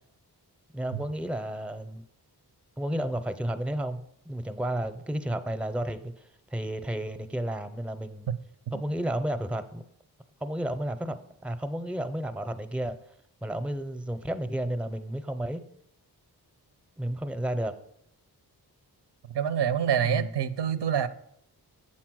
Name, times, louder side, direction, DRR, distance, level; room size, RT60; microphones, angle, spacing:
voice 1, 0.7-2.0 2.8-4.0 4.3-6.0 6.5-8.3 8.7-9.8 10.4-13.0 13.4-15.6 17.0-17.7 20.0-20.3, right 1 dB, 5° right, 11 dB, 0.5 m, -32 dB
voice 2, 19.3-21.1, right 9 dB, 85° right, 11 dB, 0.6 m, -26 dB
7.6 x 4.2 x 6.1 m, 0.74 s
wide cardioid pair, 65°, 40 cm